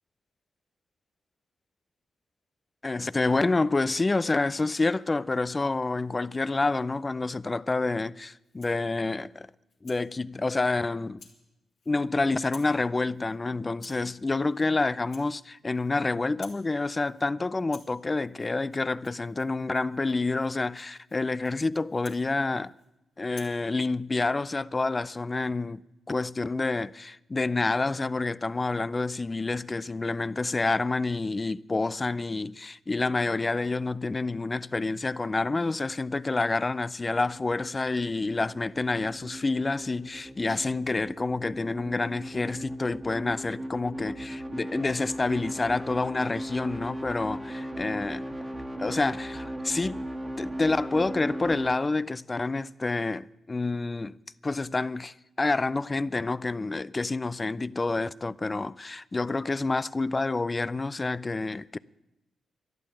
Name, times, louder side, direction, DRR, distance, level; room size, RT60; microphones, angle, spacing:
voice 1, 2.8-9.5 9.8-11.2 11.9-22.7 23.2-25.8 26.1-48.3 48.8-50.0 50.4-54.1 54.4-61.8, left 3 dB, 30° left, 0.5 m, -28 dB
Rattle (instrument), 8.4-8.9 9.3-10.0 10.5-10.8 11.2-11.4 11.7-12.1 12.4-12.8 13.0-13.4 13.7-14.1 14.5-14.7 15.0-16.0 16.2-16.7 17.0-17.3 17.6-22.9 23.3-23.6, left 4 dB, 70° left, 3.1 m, -54 dB
sound 1, 37.2-51.8, right 1 dB, 15° right, 1.6 m, -38 dB
12.5 x 11.0 x 9.1 m
supercardioid pair, 45°, 0 cm